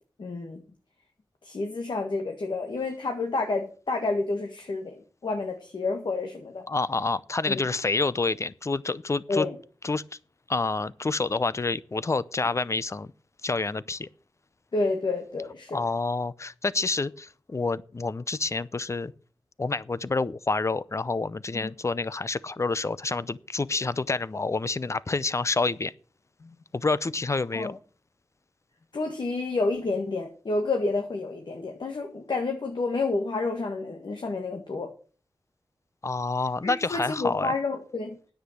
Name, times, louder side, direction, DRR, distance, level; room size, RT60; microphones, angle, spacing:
voice 1, 0.2-0.6 1.4-4.9 5.2-6.6 7.5-7.6 9.3-9.6 14.7-15.8 21.5-21.7 26.4-26.5 27.5-27.7 28.9-34.9 36.6-38.2, left 3 dB, 65° left, 1.6 m, -29 dB
voice 2, 6.7-9.5 9.8-10.0 10.5-13.1 13.4-14.1 15.7-19.1 19.6-25.9 26.7-27.8 36.0-37.5, left 3 dB, 35° left, 0.6 m, -28 dB
9.8 x 8.2 x 6.5 m
wide cardioid pair, 85°, 9 cm